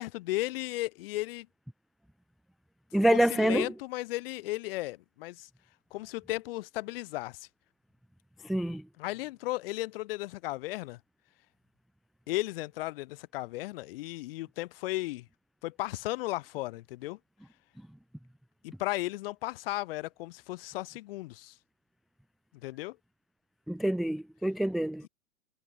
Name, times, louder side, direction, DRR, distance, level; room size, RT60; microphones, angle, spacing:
voice 1, 0.0-1.5 3.1-5.5 5.9-7.5 9.0-11.0 12.3-15.3 15.6-17.2 18.6-21.5 22.6-23.0, left 19 dB, 40° left, 4.7 m, -35 dB
voice 2, 2.9-3.7 8.4-8.9 23.7-25.1, right 1 dB, ahead, 0.5 m, -27 dB
figure-of-eight pair, 110°, 42 cm